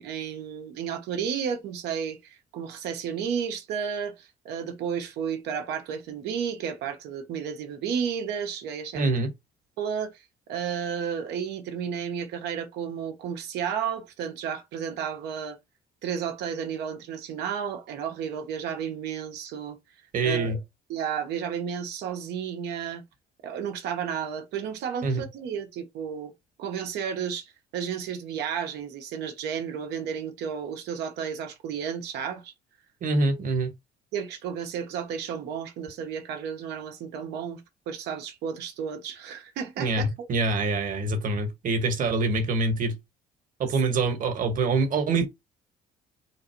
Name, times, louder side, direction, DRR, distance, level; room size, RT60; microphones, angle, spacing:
voice 1, 0.0-9.0 9.8-10.2 10.5-15.6 16.0-19.8 20.2-20.6 20.9-23.0 23.4-26.3 26.6-32.5 34.1-37.6 37.9-40.3 43.6-43.7, right 7 dB, 85° right, 1.3 m, -32 dB
voice 2, 8.9-9.3 20.1-20.6 25.0-25.2 33.0-33.7 39.8-43.0 43.6-45.3, right 3 dB, 50° right, 1.6 m, -25 dB
4.0 x 2.7 x 4.5 m
cardioid pair, 110°, 17 cm